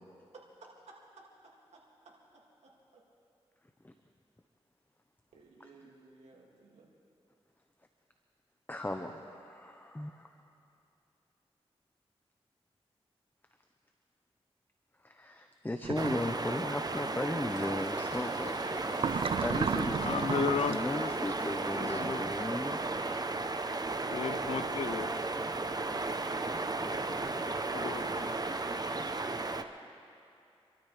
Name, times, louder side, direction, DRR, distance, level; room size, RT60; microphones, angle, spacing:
voice 1, 1.7-2.1 2.6-3.0 5.3-6.9, right 3 dB, 85° right, -3 dB, 2.5 m, -57 dB
voice 2, 8.7-10.3 15.0-20.1 20.6-22.8 26.8-27.3, left 1 dB, 20° left, 5 dB, 1.0 m, -37 dB
sound 1, 15.8-16.3 19.0-20.8, right 6 dB, 55° right, 0.4 m, -33 dB
sound 2, 16.0-29.6, right 3 dB, 35° right, 0.9 m, -34 dB
Engine, 17.5-22.7, left 1 dB, 40° left, 4.0 m, -56 dB
voice 3, 19.9-21.2 21.7-22.4 24.1-25.2 27.7-28.4, left 5 dB, 65° left, 8 dB, 0.9 m, -35 dB
27.5 x 13.0 x 3.4 m, 2.7 s
cardioid pair, 45°, 11 cm